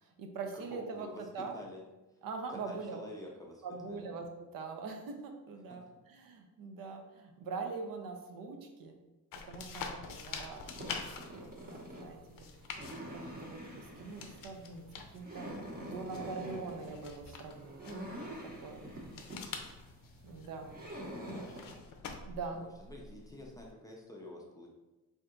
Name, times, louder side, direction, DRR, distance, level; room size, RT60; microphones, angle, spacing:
voice 1, 0.0-1.1 1.3-1.6 2.2-3.0 3.6-9.0 9.5-10.6 10.9-12.5 13.1-14.8 15.1-15.5 15.8-18.0 18.3-19.2 20.2-20.8 22.3-22.6, right 4 dB, 70° right, 4 dB, 0.6 m, -43 dB
voice 2, 0.5-1.2 1.5-1.8 2.5-4.1 5.8-5.9 19.4-19.7 21.1-21.7 22.5-24.7, left 1 dB, 10° left, -2 dB, 0.4 m, -49 dB
sound 1, 9.3-23.7, left 5 dB, 70° left, 0.5 m, -48 dB
sound 2, 10.6-21.8, equal, 25° right, 0.8 m, -46 dB
3.3 x 2.7 x 3.7 m, 1.0 s
cardioid pair, 150°, 35 cm